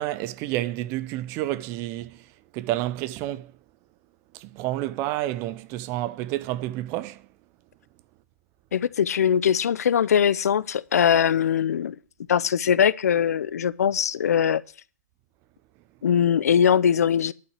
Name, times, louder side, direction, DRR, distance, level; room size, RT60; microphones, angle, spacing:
voice 1, 0.0-2.2 2.5-3.5 4.3-7.2, right 15 dB, 30° right, 0.7 m, -29 dB
voice 2, 8.7-11.9 12.3-14.6 16.0-17.3, left 8 dB, 70° left, 0.6 m, -21 dB
11.5 x 5.8 x 8.2 m
hypercardioid pair, 130°, 9 cm